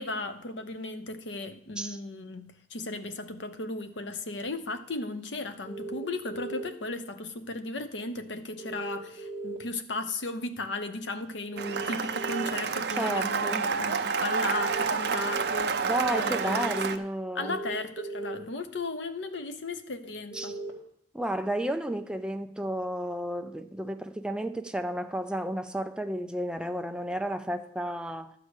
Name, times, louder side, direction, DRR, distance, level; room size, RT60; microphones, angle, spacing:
voice 1, 0.0-17.0 17.3-20.5, left 2 dB, 75° left, 0.9 m, -36 dB
sound 1, 5.6-6.6 8.6-9.6 11.5-12.5 14.4-15.4 17.4-18.4 20.3-20.7, right 3 dB, 15° left, 2.1 m, -37 dB
Cheering / Applause, 11.6-17.0, right 5 dB, 60° right, 0.7 m, -29 dB
voice 2, 12.9-13.7 15.8-17.6 20.3-20.5 21.1-28.3, right 1 dB, 5° right, 0.5 m, -32 dB
12.0 x 4.9 x 8.1 m
head